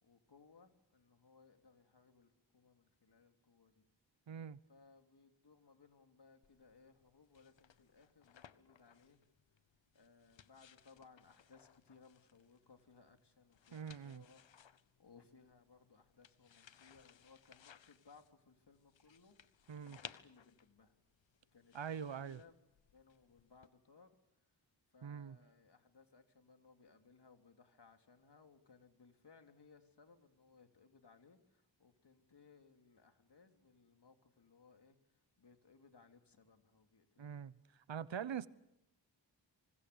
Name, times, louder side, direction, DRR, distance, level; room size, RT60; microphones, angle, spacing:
voice 1, 0.0-3.8 4.7-9.2 9.9-14.4 15.0-21.0 21.5-22.5 22.9-24.2 24.9-37.3 38.4-38.5, left 4 dB, 65° left, 3.1 m, -65 dB
voice 2, 4.3-4.6 13.7-14.2 19.7-20.0 21.7-22.4 25.0-25.4 37.2-37.6 37.9-38.5, right 8 dB, 85° right, 1.0 m, -43 dB
sound 1, 6.4-23.7, left 8 dB, 90° left, 1.0 m, -62 dB
27.5 x 25.5 x 6.9 m
cardioid pair, 50°, 44 cm